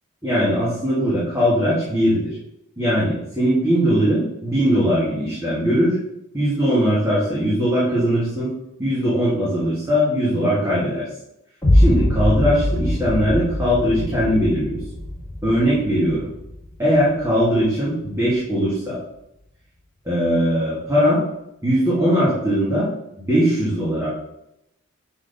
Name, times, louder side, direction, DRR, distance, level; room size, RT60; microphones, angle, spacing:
voice 1, 0.2-2.3 2.8-6.0 6.3-8.5 8.8-11.1 11.7-14.8 15.4-16.3 16.8-19.0 20.1-21.2 21.6-22.9 23.2-24.1, equal, 15° right, -9 dB, 1.7 m, -20 dB
sound 1, 11.6-17.6, left 1 dB, 10° left, 2.0 m, -22 dB
6.2 x 4.3 x 5.2 m, 0.84 s
head